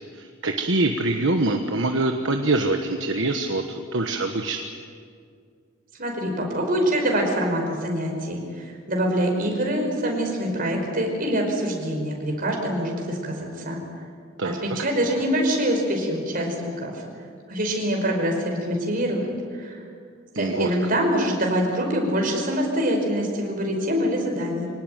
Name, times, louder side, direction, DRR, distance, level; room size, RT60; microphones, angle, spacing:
voice 1, 0.1-4.6 14.4-14.6 20.3-20.7, right 2 dB, 65° right, 4 dB, 1.4 m, -24 dB
voice 2, 6.0-13.8 14.4-16.9 17.5-19.3 19.6-19.8 20.4-24.7, equal, 45° right, 1 dB, 5.5 m, -25 dB
25.0 x 18.5 x 9.4 m, 2.2 s
head